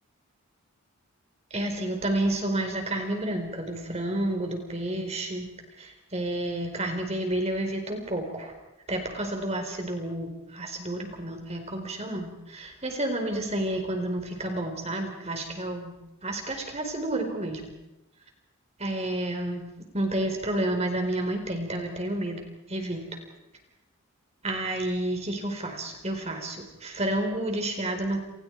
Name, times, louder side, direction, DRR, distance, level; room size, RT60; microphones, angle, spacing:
voice 1, 1.5-8.5 8.9-16.0 16.2-17.6 18.8-19.7 19.9-22.4 22.7-23.0 24.4-28.2, right 1 dB, 30° right, 4 dB, 4.4 m, -30 dB
29.0 x 29.0 x 4.8 m, 0.94 s
head